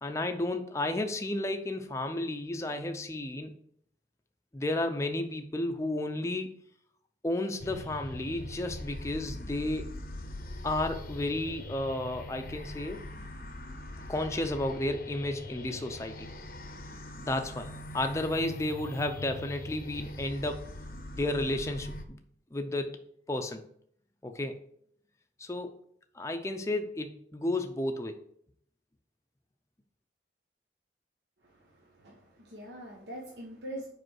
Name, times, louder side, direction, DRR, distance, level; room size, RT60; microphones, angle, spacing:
voice 1, 0.0-3.5 4.5-6.5 7.2-9.9 10.6-13.0 14.1-16.3 17.2-20.6 21.1-21.9 22.5-23.0 23.3-23.6 24.2-24.6 25.4-25.7 26.2-28.2, left 1 dB, 15° left, 5 dB, 0.5 m, -32 dB
sound 1, 7.6-22.0, left 1 dB, 50° left, 0.7 m, -42 dB
voice 2, 31.4-33.9, right 1 dB, 70° right, -2 dB, 1.2 m, -44 dB
5.1 x 5.0 x 6.3 m, 0.66 s
head